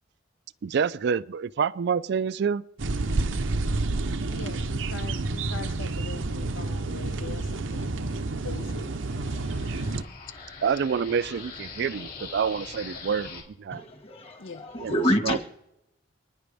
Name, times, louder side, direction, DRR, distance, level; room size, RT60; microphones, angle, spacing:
voice 1, 0.6-2.6 10.6-13.8 14.8-15.4, right 6 dB, 60° right, 0.4 m, -27 dB
sound 1, 2.8-10.0, right 2 dB, 85° right, 0.7 m, -29 dB
voice 2, 4.3-8.9 14.4-14.7, left 4 dB, 80° left, 0.9 m, -42 dB
sound 2, 6.9-13.4, left 4 dB, 50° left, 2.6 m, -44 dB
voice 3, 13.7-15.4, equal, 30° left, 1.7 m, -27 dB
28.0 x 9.9 x 3.4 m
head